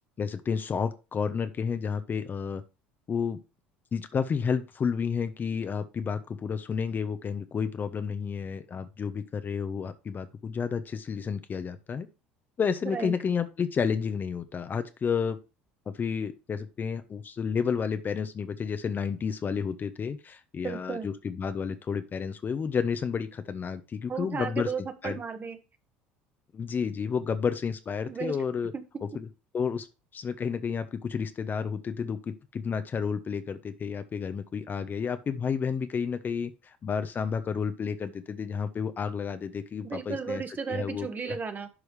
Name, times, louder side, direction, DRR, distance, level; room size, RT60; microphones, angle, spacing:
voice 1, 0.2-2.6 3.1-3.4 3.9-12.1 12.6-15.4 15.9-24.7 25.0-25.2 26.5-28.7 29.1-29.3 29.5-29.9 30.1-40.4 40.7-41.4, left 6 dB, 35° left, 10 dB, 1.0 m, -31 dB
voice 2, 20.6-21.1 24.1-25.6 28.1-28.4 28.7-28.8 39.8-41.7, right 5 dB, 30° right, 8 dB, 1.5 m, -34 dB
11.5 x 4.9 x 3.4 m, 0.29 s
hypercardioid pair, 70°, 6 cm